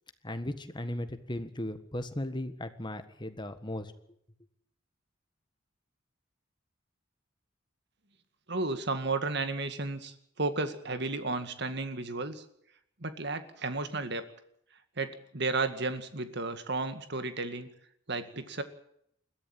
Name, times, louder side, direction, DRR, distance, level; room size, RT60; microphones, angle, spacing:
voice 1, 0.2-3.9, left 1 dB, 25° left, 9 dB, 1.6 m, -36 dB
voice 2, 8.5-12.4 13.0-14.2 15.0-17.7 18.1-18.6, right 3 dB, 60° right, 9 dB, 2.0 m, -33 dB
21.5 x 14.0 x 8.8 m, 0.71 s
head